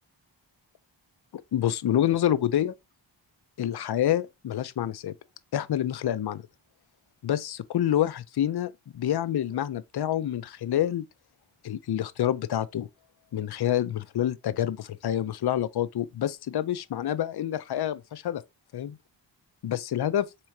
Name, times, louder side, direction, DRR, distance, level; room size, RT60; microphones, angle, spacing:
voice 1, 1.3-2.7 3.6-5.1 5.5-6.4 7.2-11.1 11.6-12.9 13.3-18.4 18.7-19.0 19.6-20.3, left 11 dB, 60° left, 0.5 m, -27 dB
3.6 x 2.9 x 4.5 m
wide cardioid pair, 75°, 46 cm